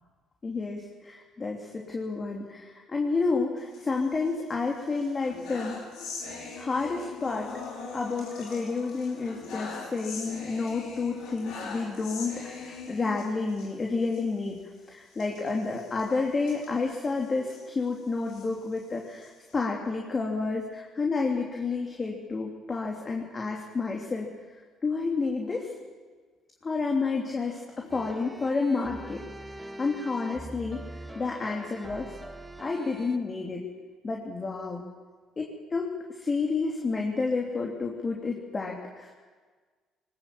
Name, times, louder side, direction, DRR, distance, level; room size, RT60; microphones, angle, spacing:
voice 1, 0.4-5.8 6.5-7.5 7.9-14.6 14.9-24.3 24.8-25.7 26.6-29.2 29.5-32.1 32.6-33.7 34.0-34.8 35.4-39.1, left 4 dB, 35° left, 0 dB, 3.1 m, -30 dB
sound 1, 3.6-4.5 4.9-13.7 14.1-14.2 14.5-14.6 15.1-17.6 18.1-19.5, left 4 dB, 75° left, 5.0 m, -41 dB
sound 2, 27.9-33.2, right 1 dB, 15° right, 2.1 m, -43 dB
20.0 x 20.0 x 7.5 m, 1.5 s
supercardioid pair, 65°, 0 cm